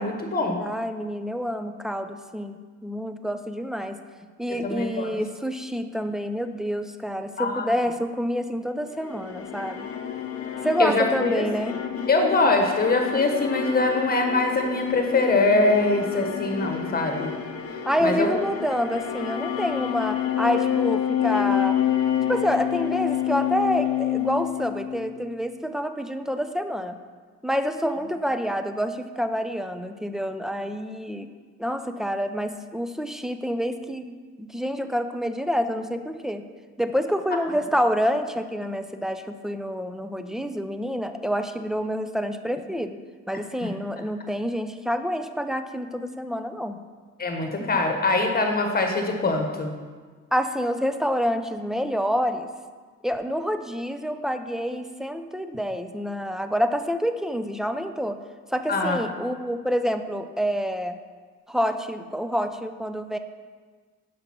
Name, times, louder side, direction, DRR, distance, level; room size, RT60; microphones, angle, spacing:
voice 1, 0.0-0.6 4.6-5.1 7.4-7.7 10.8-11.7 12.1-17.3 18.0-18.3 43.6-43.7 47.2-49.7 58.7-59.0, left 3 dB, 30° left, 3 dB, 1.2 m, -23 dB
voice 2, 0.6-4.0 4.4-9.9 10.6-11.8 17.9-21.8 22.3-27.0 27.4-31.3 31.6-36.4 36.8-43.0 43.3-46.8 47.6-47.7 50.3-52.5 53.0-58.2 58.5-61.0 61.5-63.2, equal, ahead, 8 dB, 0.4 m, -27 dB
sound 1, 8.9-25.2, left 10 dB, 50° left, 0.7 m, -28 dB
5.9 x 5.1 x 5.9 m, 1.5 s
cardioid pair, 90°, 30 cm